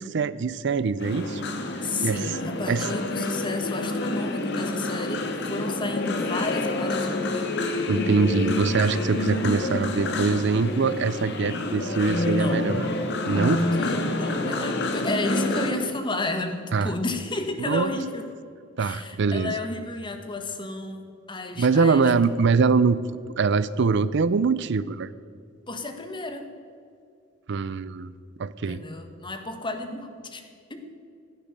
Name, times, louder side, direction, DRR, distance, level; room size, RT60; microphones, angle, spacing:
voice 1, 0.0-1.5 2.0-2.4 2.7-2.8 7.9-12.9 13.3-13.6 16.7-16.9 17.7-17.9 18.8-19.5 21.6-23.0 23.4-25.1 27.5-28.1 28.4-28.8, right 4 dB, 60° right, 16 dB, 0.5 m, -23 dB
sound 1, 1.0-15.7, left 2 dB, 60° left, 1.6 m, -28 dB
voice 2, 1.8-7.5 12.1-12.8 13.3-18.3 18.8-22.1 25.7-26.5 28.6-30.4 30.7-30.8, left 2 dB, 25° left, 6 dB, 1.5 m, -31 dB
15.5 x 10.5 x 6.6 m, 2.4 s
head